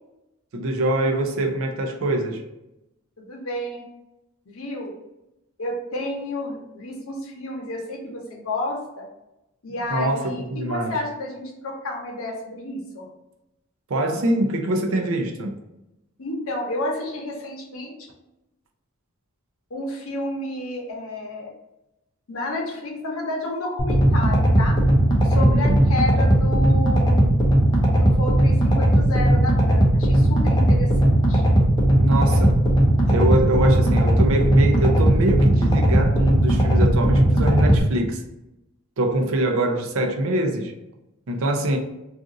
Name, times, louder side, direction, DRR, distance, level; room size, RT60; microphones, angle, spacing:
voice 1, 0.5-2.4 9.9-11.0 13.9-15.6 25.3-25.8 32.0-32.6 33.1-38.2 39.0-40.7 41.3-41.8, right 1 dB, 70° right, 3 dB, 0.5 m, -23 dB
voice 2, 3.2-3.8 4.5-4.9 5.6-9.1 9.6-13.0 16.2-18.1 19.7-21.5 22.3-24.8 25.2-27.6 28.0-31.4, left 1 dB, 75° left, -1 dB, 0.8 m, -31 dB
sound 1, 23.8-37.8, right 1 dB, 20° left, 0.5 m, -18 dB
2.5 x 2.4 x 3.8 m, 0.92 s
head